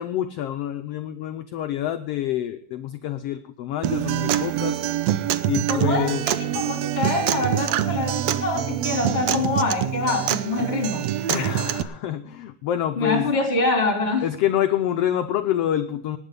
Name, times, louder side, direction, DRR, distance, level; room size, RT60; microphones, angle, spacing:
voice 1, 0.0-4.8 5.5-6.2 11.3-13.3 14.2-16.2, left 11 dB, 80° left, 9 dB, 1.4 m, -27 dB
Acoustic guitar, 3.8-11.8, right 11 dB, 70° right, 1.7 m, -25 dB
voice 2, 5.7-11.1 13.0-14.3, left 3 dB, 20° left, 4 dB, 3.2 m, -25 dB
19.0 x 9.4 x 5.2 m, 0.66 s
omnidirectional pair, 3.6 m